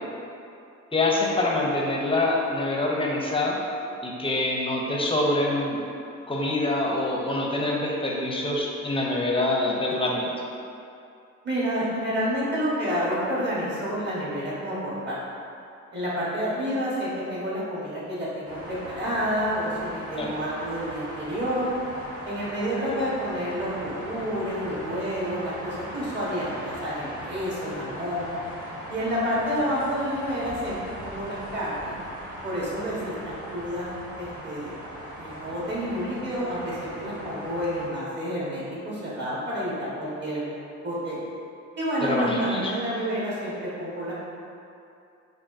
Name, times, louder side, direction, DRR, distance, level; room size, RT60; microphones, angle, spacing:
voice 1, 0.9-3.6 4.0-5.8 6.3-10.3 20.2-20.3 42.0-42.7, left 2 dB, 20° left, -2 dB, 0.6 m, -25 dB
voice 2, 11.4-15.1 15.9-21.7 22.2-28.3 28.9-31.9 32.4-33.9 34.2-34.8 35.2-40.5 40.8-41.2 41.8-44.1, equal, 35° right, -8 dB, 1.4 m, -29 dB
sound 1, 18.4-37.9, right 1 dB, 75° right, 1.2 m, -39 dB
4.8 x 2.6 x 2.6 m, 2.6 s
cardioid pair, 90°, 30 cm